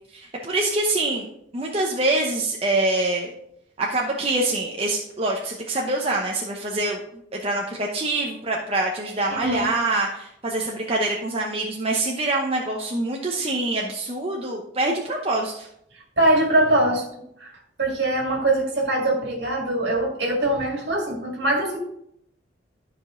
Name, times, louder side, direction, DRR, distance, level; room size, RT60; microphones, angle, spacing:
voice 1, 0.1-1.3 1.5-3.3 3.8-7.0 7.3-15.7, right 2 dB, 30° right, -1 dB, 0.8 m, -25 dB
voice 2, 9.3-9.7 16.2-17.0 17.4-17.5 17.8-21.8, right 1 dB, 65° right, -1 dB, 2.2 m, -22 dB
12.5 x 5.1 x 3.8 m, 0.76 s
head